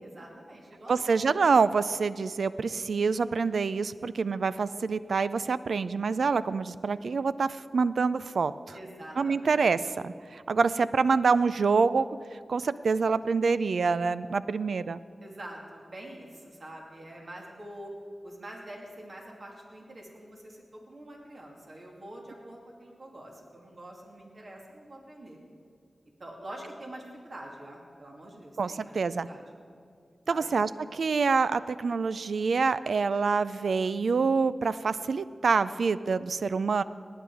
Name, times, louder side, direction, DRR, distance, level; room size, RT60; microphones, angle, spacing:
voice 1, 0.0-1.2 8.7-10.0 15.2-17.9 18.2-25.4 26.2-28.9 29.2-29.4 30.2-30.5, right 1 dB, 55° right, -1 dB, 2.6 m, -45 dB
voice 2, 0.9-8.5 9.2-12.1 12.5-15.0 28.6-29.3 30.3-36.8, right 4 dB, 85° right, 15 dB, 0.3 m, -26 dB
18.0 x 9.3 x 4.8 m, 2.3 s
cardioid pair, 60°, 0 cm